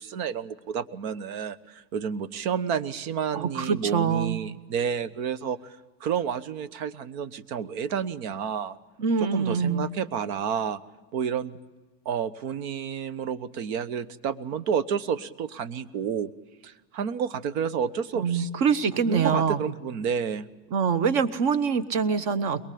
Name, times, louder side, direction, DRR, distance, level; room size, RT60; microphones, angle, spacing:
voice 1, 0.0-8.8 9.2-10.8 11.1-11.6 12.0-16.3 16.6-18.5 19.1-20.5, right 7 dB, 70° right, 14 dB, 1.3 m, -30 dB
voice 2, 3.3-4.4 9.0-9.8 18.1-19.6 20.7-22.6, right 6 dB, 45° right, 13 dB, 1.2 m, -24 dB
23.0 x 22.5 x 8.5 m, 1.2 s
cardioid pair, 175°, 44 cm